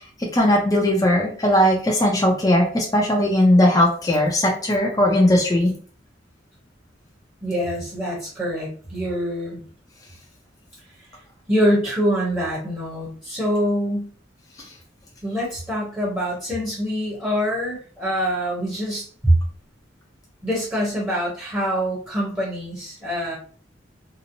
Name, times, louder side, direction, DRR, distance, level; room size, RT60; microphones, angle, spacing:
voice 1, 0.3-5.7, left 1 dB, 20° left, -1 dB, 0.5 m, -18 dB
voice 2, 7.4-9.6 11.5-14.1 15.2-19.3 20.4-23.4, equal, 10° right, -6 dB, 0.9 m, -24 dB
2.9 x 2.0 x 2.6 m, 0.41 s
head